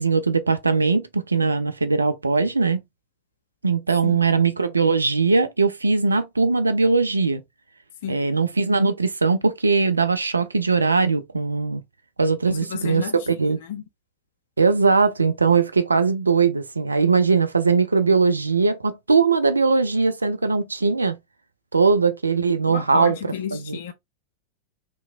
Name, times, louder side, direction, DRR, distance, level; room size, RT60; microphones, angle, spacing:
voice 1, 0.0-2.8 3.6-7.4 8.1-11.8 12.2-13.6 14.6-21.1 21.7-23.8, right 4 dB, 80° right, 0.3 m, -20 dB
voice 2, 12.5-13.1 13.7-13.8 22.7-23.9, left 9 dB, 55° left, 0.4 m, -31 dB
2.8 x 2.3 x 2.4 m
figure-of-eight pair, 90°, 0 cm